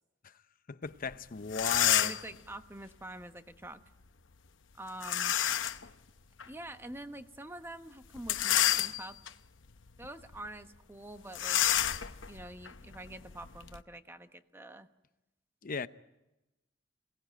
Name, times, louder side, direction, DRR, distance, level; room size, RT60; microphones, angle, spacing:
voice 1, 0.7-2.1 15.6-15.9, left 4 dB, 50° left, 0.8 m, -36 dB
sound 1, 1.1-1.2 1.5-2.3 5.0-5.9 6.4-6.5 8.2-9.3 9.9-10.1 10.3-10.5 11.3-13.8, left 11 dB, 90° left, 0.8 m, -29 dB
voice 2, 2.0-3.8 4.8-5.3 6.5-9.2 10.0-11.6 12.3-14.9, right 1 dB, 15° right, 1.1 m, -46 dB
27.0 x 18.0 x 9.0 m
head